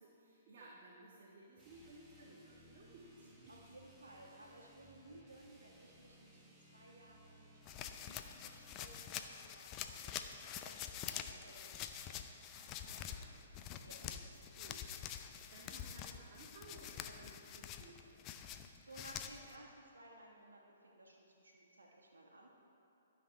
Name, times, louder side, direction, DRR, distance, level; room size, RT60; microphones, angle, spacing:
voice 1, 0.0-3.6 4.4-4.5 5.0-5.2 12.5-13.5 14.0-14.2 14.6-14.9 15.5-18.2, right 2 dB, 50° right, -5 dB, 1.4 m, -58 dB
sound 1, 1.6-9.1, equal, 5° right, 1.2 m, -63 dB
voice 2, 3.5-10.2 10.6-12.2 13.8-14.0 18.5-22.5, right 1 dB, 85° right, -3 dB, 1.4 m, -59 dB
sound 2, 7.6-19.5, left 9 dB, 30° left, 0.5 m, -47 dB
12.0 x 5.8 x 4.6 m, 2.8 s
hypercardioid pair, 130°, 0 cm